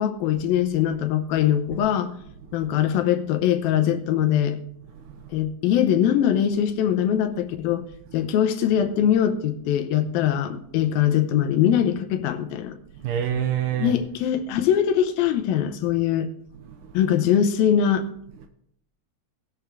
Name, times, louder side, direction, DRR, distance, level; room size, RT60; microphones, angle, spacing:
voice 1, 0.0-2.1 2.5-4.6 5.3-7.8 8.1-12.8 13.8-16.3 16.9-18.1, left 9 dB, 90° left, 2.6 m, -22 dB
voice 2, 5.1-5.4 13.0-14.0 16.6-16.9 18.4-18.5, right 9 dB, 75° right, 2.2 m, -28 dB
19.0 x 6.7 x 3.4 m
omnidirectional pair, 4.2 m